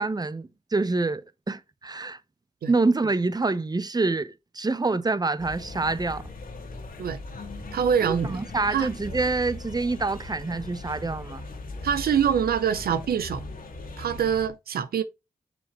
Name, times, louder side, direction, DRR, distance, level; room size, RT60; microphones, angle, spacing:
voice 1, 0.0-2.2 2.7-6.2 8.0-11.4, right 3 dB, 25° right, 0.8 m, -26 dB
sound 1, 5.4-14.5, left 2 dB, 70° left, 2.1 m, -39 dB
voice 2, 7.7-8.4 8.7-8.9 11.8-13.4 14.0-15.0, right 8 dB, 90° right, 0.8 m, -24 dB
7.1 x 5.8 x 3.0 m
cardioid pair, 45°, 15 cm